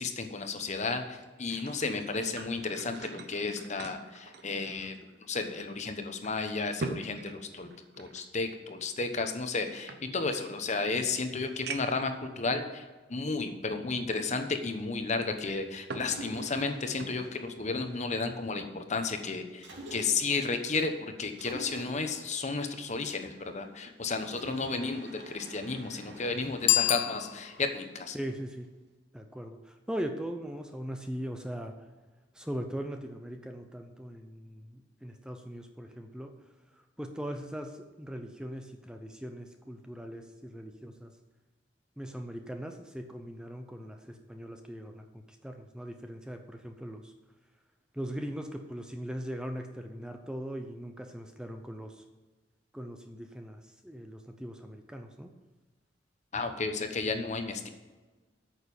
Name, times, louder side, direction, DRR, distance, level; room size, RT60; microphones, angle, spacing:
voice 1, 0.0-5.0 5.3-7.7 8.0-28.2 56.3-57.7, left 3 dB, 40° left, 7 dB, 1.0 m, -33 dB
sound 1, 1.2-5.2 5.6-5.7 6.2-8.2 9.1-10.5 11.1-11.2 11.7-12.1 12.8-12.9 15.2-16.2 16.5-17.4 17.8-18.0, right 3 dB, 60° right, 0.9 m, -43 dB
Mechanisms, 16.0-18.4 19.6-20.5 21.4-23.7 24.3-28.5, right 1 dB, 80° right, 2.5 m, -49 dB
Bicycle bell, 26.6-27.8, left 15 dB, 90° left, 0.5 m, -28 dB
voice 2, 28.1-28.7 29.1-31.7 32.3-36.3 37.0-41.1 42.0-47.1 47.9-52.0 52.7-55.3, equal, 5° right, 5 dB, 0.6 m, -40 dB
9.2 x 6.6 x 7.0 m, 1.2 s
head